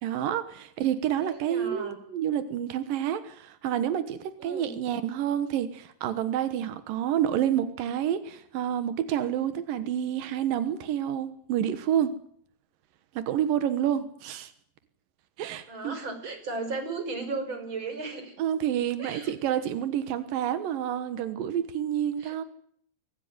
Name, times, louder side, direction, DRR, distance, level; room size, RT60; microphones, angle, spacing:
voice 1, 0.0-12.1 13.2-14.5 15.4-16.0 18.4-22.4, right 10 dB, 85° right, 12 dB, 1.9 m, -29 dB
voice 2, 1.2-2.0 4.4-4.7 15.7-18.4 19.0-19.3 22.2-22.4, right 3 dB, 25° right, 6 dB, 5.4 m, -35 dB
23.0 x 18.5 x 9.6 m, 0.66 s
omnidirectional pair, 5.9 m